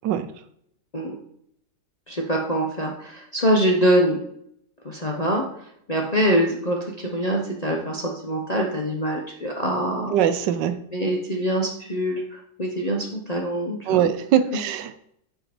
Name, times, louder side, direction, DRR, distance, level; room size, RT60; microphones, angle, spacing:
voice 1, 2.1-4.2 4.8-5.4 5.9-10.2 10.9-14.1 14.5-14.6, equal, 35° left, -1 dB, 0.6 m, -24 dB
voice 2, 10.1-10.8 13.9-15.0, right 9 dB, 80° right, 11 dB, 1.3 m, -22 dB
7.9 x 5.0 x 4.3 m, 0.70 s
omnidirectional pair, 1.9 m